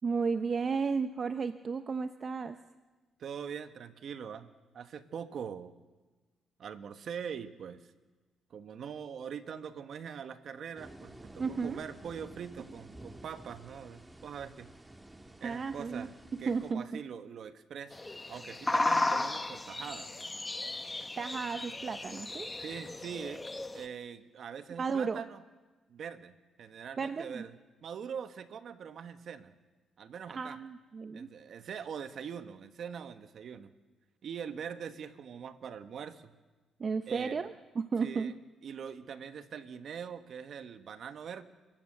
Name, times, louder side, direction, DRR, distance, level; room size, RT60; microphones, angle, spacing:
voice 1, 0.0-2.6 11.4-11.8 15.4-16.1 16.5-17.0 21.2-22.5 24.8-25.2 27.0-27.5 30.3-31.3 36.8-38.3, right 5 dB, 40° right, 9 dB, 0.7 m, -33 dB
voice 2, 3.2-5.7 6.6-7.8 8.5-14.7 15.4-18.0 18.3-20.3 22.6-23.5 23.7-25.4 25.9-27.5 27.8-29.5 30.0-30.6 31.1-33.7 34.2-36.3 37.1-37.5 38.0-38.3 38.6-41.4, right 7 dB, 60° right, 10 dB, 1.3 m, -43 dB
sound 1, 10.8-16.7, right 1 dB, 15° right, 2.3 m, -51 dB
sound 2, 17.9-23.9, left 2 dB, 15° left, 1.2 m, -34 dB
29.0 x 14.0 x 7.8 m, 1.3 s
cardioid pair, 90°, 0 cm